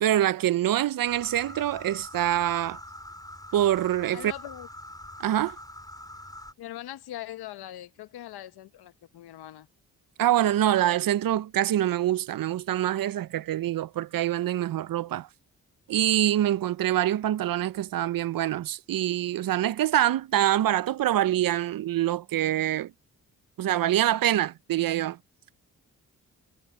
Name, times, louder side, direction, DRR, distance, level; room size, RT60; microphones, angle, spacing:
voice 1, 0.0-2.8 3.5-4.3 5.2-5.6 10.2-15.3 15.9-22.9 23.6-25.2, right 12 dB, 65° right, 0.7 m, -25 dB
sound 1, 1.1-6.5, left 1 dB, 10° left, 4.9 m, -44 dB
voice 2, 4.1-4.7 6.6-9.7, left 13 dB, 85° left, 1.1 m, -41 dB
supercardioid pair, 50°, 37 cm